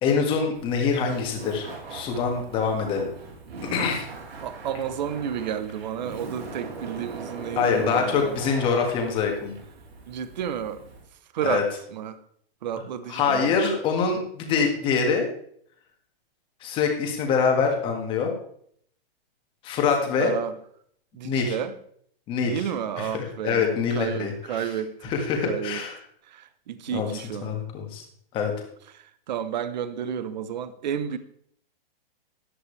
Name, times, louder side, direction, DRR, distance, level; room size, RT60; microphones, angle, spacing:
voice 1, 0.0-3.1 3.6-4.1 7.6-9.5 11.4-11.6 13.1-15.2 16.6-18.3 19.6-20.3 21.2-21.6 22.3-22.7 23.0-24.8 25.0-26.0 26.9-27.1 27.4-28.0 28.3-28.5, left 5 dB, 15° left, 1.8 m, -25 dB
Laughter, 0.5-11.0, right 3 dB, 80° right, 4.1 m, -40 dB
voice 2, 4.4-8.4 10.1-10.8 11.3-11.7 11.9-12.2 12.6-13.6 20.2-20.5 21.1-21.7 22.4-24.9 25.4-25.8 26.3-27.6 28.9-31.2, right 9 dB, 45° right, 1.0 m, -31 dB
14.0 x 11.0 x 3.3 m
hypercardioid pair, 170°, 30 cm